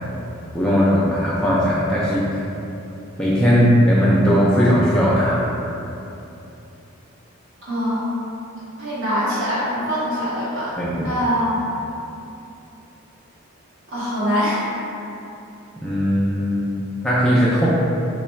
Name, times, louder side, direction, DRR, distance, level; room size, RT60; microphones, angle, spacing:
voice 1, 0.5-2.3 3.2-5.4 10.8-11.1 15.8-17.7, equal, 5° left, -8 dB, 0.3 m, -18 dB
voice 2, 7.6-8.1 8.8-10.7 11.0-11.5 13.9-14.7, equal, 60° right, -12 dB, 1.5 m, -23 dB
3.1 x 2.3 x 4.2 m, 2.8 s
head